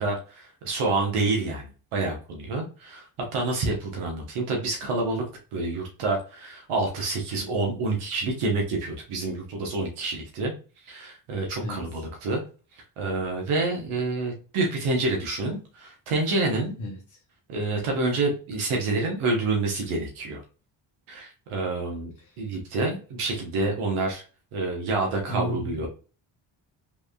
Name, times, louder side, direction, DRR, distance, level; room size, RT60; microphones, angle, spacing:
voice 1, 0.0-3.0 3.3-5.2 5.5-10.5 10.8-12.4 12.7-16.8 17.5-20.4 21.1-22.1 22.4-24.2 24.5-25.9, right 3 dB, 75° right, 1.1 m, -28 dB
voice 2, 11.6-12.0 16.8-17.2 22.2-22.4 25.3-25.9, equal, 35° left, 0.9 m, -34 dB
3.5 x 3.2 x 2.2 m
supercardioid pair, 65°, 50 cm